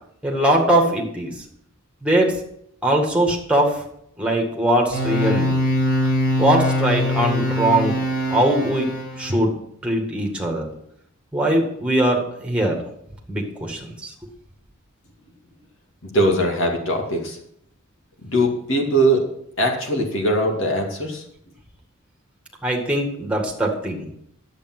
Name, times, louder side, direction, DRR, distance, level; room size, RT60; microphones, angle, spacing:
voice 1, 0.2-1.4 2.0-2.3 2.8-3.8 4.2-5.6 6.4-8.0 8.3-8.9 9.2-9.5 9.8-10.7 11.3-12.7 13.3-14.1 22.6-24.1, right 1 dB, 5° right, 0 dB, 2.0 m, -21 dB
sound 1, 4.9-9.4, left 1 dB, 40° left, 5.2 m, -22 dB
voice 2, 16.0-17.4 18.2-19.2 19.6-21.2, right 1 dB, 60° left, 1 dB, 2.4 m, -21 dB
10.5 x 8.3 x 6.1 m, 0.72 s
head